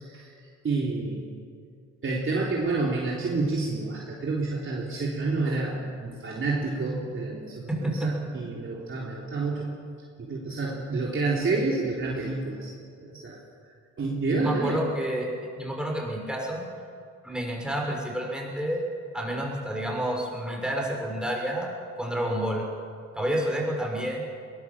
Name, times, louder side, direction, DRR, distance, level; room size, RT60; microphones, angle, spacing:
voice 1, 0.0-1.4 2.0-9.7 10.2-12.7 13.0-13.4 14.0-14.9, right 3 dB, 40° right, -3 dB, 3.7 m, -29 dB
voice 2, 7.7-8.1 14.4-15.3 15.6-16.6 17.2-18.8 19.1-22.6 23.1-24.2, right 1 dB, 5° right, -1 dB, 6.2 m, -29 dB
22.0 x 19.5 x 7.4 m, 2.2 s
cardioid pair, 90°, 30 cm